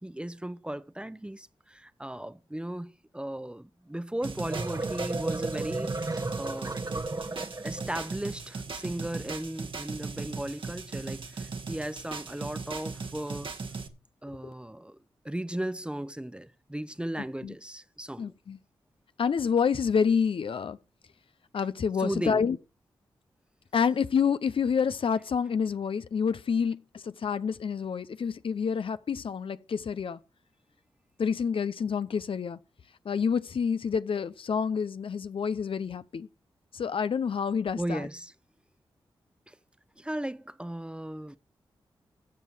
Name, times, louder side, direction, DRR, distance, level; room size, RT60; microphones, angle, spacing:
voice 1, 0.0-6.8 7.6-13.5 14.2-15.0 15.2-18.3 22.0-22.4 37.8-38.3 39.5-39.6 40.0-41.4, right 1 dB, 10° right, 0.8 m, -36 dB
sound 1, 4.2-8.1, right 2 dB, 40° right, 1.2 m, -34 dB
sound 2, 4.2-13.9, right 4 dB, 60° right, 1.8 m, -38 dB
voice 2, 18.2-18.6 19.2-20.8 21.5-22.6 23.7-30.2 31.2-32.6 33.0-36.3 36.7-38.1, left 6 dB, 65° left, 0.7 m, -28 dB
14.5 x 5.5 x 6.1 m
cardioid pair, 45°, 10 cm